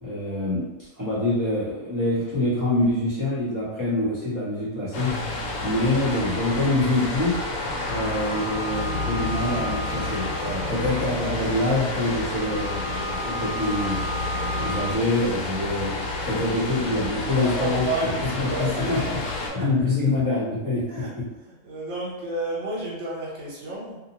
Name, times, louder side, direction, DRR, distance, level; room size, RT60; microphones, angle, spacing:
voice 1, 0.0-0.7 1.0-5.1 5.6-7.4 7.8-14.0 14.6-16.0 16.2-18.1 18.4-19.2 19.5-21.2, left 2 dB, 15° right, -11 dB, 0.7 m, -25 dB
sound 1, 4.9-19.5, left 2 dB, 85° left, 1.1 m, -30 dB
sound 2, 6.3-14.9, right 1 dB, 75° right, 1.0 m, -36 dB
voice 2, 17.4-19.0 19.5-19.6 20.9-21.1 21.4-24.0, right 2 dB, 60° right, -6 dB, 1.2 m, -31 dB
2.7 x 2.1 x 2.9 m, 1.0 s
omnidirectional pair, 1.5 m